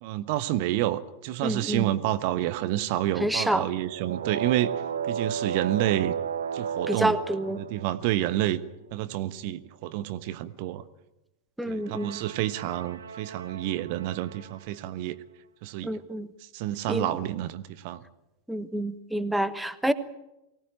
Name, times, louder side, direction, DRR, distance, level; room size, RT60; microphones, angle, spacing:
voice 1, 0.0-4.7 5.0-6.1 6.5-7.2 7.6-8.6 8.9-10.8 11.7-15.2 15.6-16.0 16.5-18.0, right 14 dB, 45° right, 12 dB, 1.2 m, -29 dB
voice 2, 1.4-1.9 3.2-3.7 6.9-7.6 11.6-12.2 15.8-16.3 16.9-17.1 18.5-19.9, right 1 dB, 5° right, 12 dB, 1.2 m, -28 dB
sound 1, 3.8-8.4 11.8-14.7, right 7 dB, 70° right, 1.5 m, -34 dB
24.0 x 18.0 x 8.9 m, 0.92 s
figure-of-eight pair, 90°, 0 cm